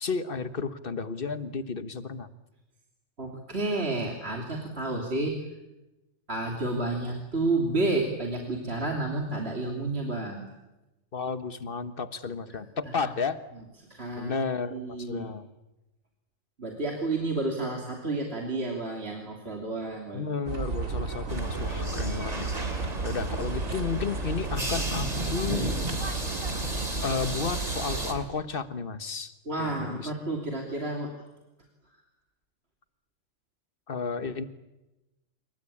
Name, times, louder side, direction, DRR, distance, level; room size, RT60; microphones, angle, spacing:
voice 1, 0.0-2.3 11.1-13.4 14.1-15.5 20.1-22.5 23.0-25.7 27.0-30.1 33.9-34.4, left 5 dB, 45° left, 11 dB, 1.4 m, -32 dB
voice 2, 3.2-5.4 6.3-10.4 13.9-14.4 14.7-15.3 16.6-20.2 29.5-31.1, right 2 dB, 50° right, 1 dB, 3.3 m, -30 dB
sound 1, 20.5-28.3, right 3 dB, 80° right, 2.9 m, -33 dB
sound 2, 21.3-28.1, right 1 dB, 30° right, 3.0 m, -34 dB
26.5 x 23.5 x 8.7 m, 1.0 s
omnidirectional pair, 1.4 m